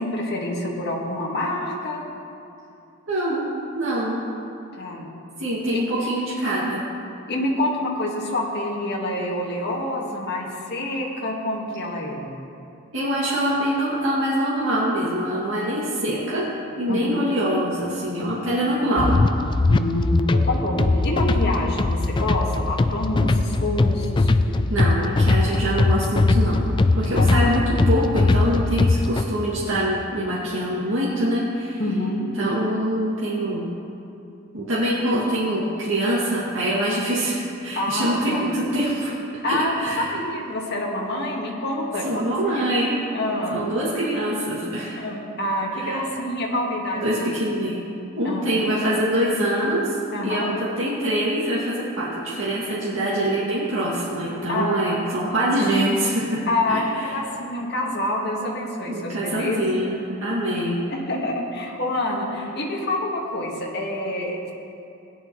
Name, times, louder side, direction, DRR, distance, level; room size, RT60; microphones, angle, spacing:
voice 1, 0.0-2.1 4.8-5.1 5.7-5.8 7.3-12.3 16.9-17.2 19.7-24.3 27.2-27.3 31.8-32.3 37.8-38.5 39.4-42.3 42.5-42.7 43.1-43.6 45.0-47.3 48.2-48.5 50.1-50.5 54.5-55.3 56.5-59.6 60.9-64.5, left 1 dB, 55° left, -2 dB, 1.8 m, -27 dB
voice 2, 3.1-3.5 3.7-4.2 5.4-6.8 12.9-16.5 16.8-19.2 24.7-26.6 27.0-31.8 32.4-33.7 34.5-39.1 39.4-40.1 42.0-43.0 43.5-45.0 45.7-46.0 47.0-47.8 48.2-49.9 50.2-57.0 58.9-60.8, right 1 dB, 70° right, -9 dB, 2.4 m, -24 dB
sound 1, 19.0-29.2, left 2 dB, 25° left, 0.3 m, -20 dB
17.5 x 10.5 x 3.2 m, 2.8 s
head